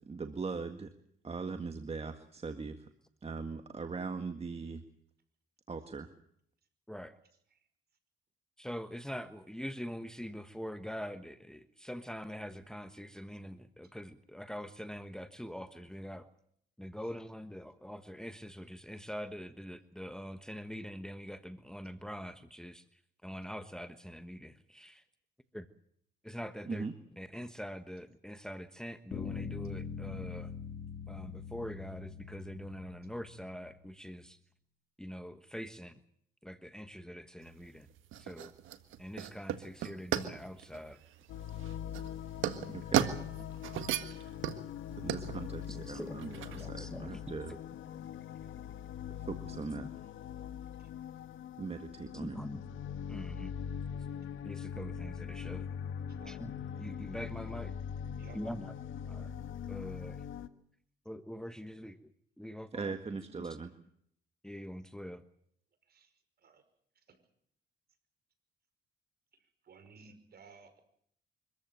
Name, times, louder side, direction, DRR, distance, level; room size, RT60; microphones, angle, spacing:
voice 1, 0.1-0.9 1.2-2.8 3.2-4.8 5.7-6.1 26.7-26.9 42.7-43.0 44.9-47.5 49.3-49.9 51.6-52.4 62.7-63.7, right 4 dB, 30° right, 7 dB, 1.8 m, -40 dB
voice 2, 8.6-16.3 16.8-22.8 23.2-25.0 25.5-25.7 26.2-26.9 27.2-30.5 31.1-34.4 35.0-36.0 36.4-37.9 38.2-38.5 39.0-41.0 45.7-46.2 46.5-47.2 47.5-47.6 49.8-49.9 52.1-52.6 53.1-53.5 54.4-55.7 56.3-56.5 56.8-57.7 58.3-58.7 59.1-59.3 59.7-60.2 61.0-62.1 62.4-63.6 64.4-65.2, equal, 5° left, 9 dB, 1.3 m, -44 dB
Bass guitar, 29.1-33.5, left 6 dB, 55° left, 3.9 m, -42 dB
sound 1, 37.4-46.7, right 10 dB, 85° right, 1.7 m, -36 dB
sound 2, 41.3-60.5, left 8 dB, 80° left, 1.4 m, -42 dB
voice 3, 58.2-58.5 65.9-66.1 66.4-66.6 67.1-67.2 69.6-70.8, right 5 dB, 55° right, 9 dB, 5.4 m, -57 dB
25.0 x 14.5 x 9.2 m, 0.68 s
cardioid pair, 90°, 20 cm